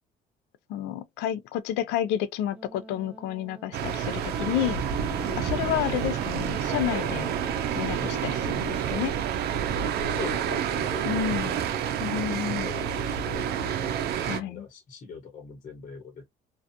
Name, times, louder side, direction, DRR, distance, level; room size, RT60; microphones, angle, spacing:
voice 1, 0.7-4.8 5.4-7.3 7.8-9.1 11.0-11.6 12.0-12.7 14.2-14.6, left 11 dB, 85° left, 0.4 m, -30 dB
Wind instrument woodwind instrument, 2.5-8.7, right 1 dB, 10° right, 0.5 m, -45 dB
sound 1, 3.7-14.4, right 8 dB, 70° right, 0.6 m, -29 dB
voice 2, 5.1-5.8 8.0-8.3 10.1-12.3 12.6-13.5 14.3-16.3, left 5 dB, 45° left, 1.0 m, -42 dB
2.5 x 2.3 x 2.7 m
cardioid pair, 110°, 17 cm